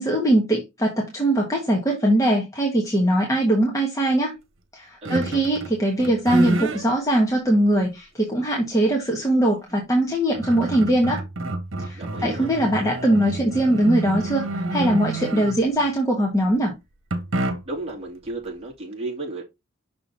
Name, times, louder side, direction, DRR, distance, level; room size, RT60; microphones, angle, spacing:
voice 1, 0.0-4.3 4.7-11.2 11.8-16.7, right 1 dB, 15° left, 1.3 m, -21 dB
voice 2, 5.0-5.5 11.9-12.5 17.7-19.4, right 2 dB, 30° right, 2.3 m, -33 dB
sound 1, 5.0-5.8 6.0-6.8 7.5-7.6 9.7-9.8 10.1-15.8 17.1-17.9, right 2 dB, 75° right, 1.4 m, -28 dB
6.2 x 4.3 x 4.0 m
head